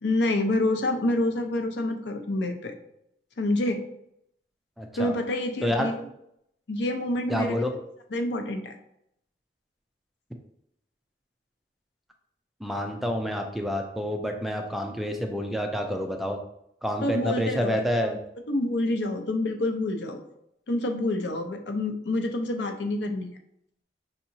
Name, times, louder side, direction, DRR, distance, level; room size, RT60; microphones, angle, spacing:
voice 1, 0.0-2.7 3.4-3.8 5.0-5.9 6.7-7.7 8.1-8.7 17.0-18.2 18.5-20.2 20.7-23.4, left 1 dB, 80° left, 6 dB, 0.6 m, -27 dB
voice 2, 4.8-5.1 5.6-5.9 7.3-7.7 12.6-16.4 16.8-18.2, equal, ahead, 3 dB, 0.3 m, -28 dB
5.5 x 2.8 x 2.7 m, 0.76 s
head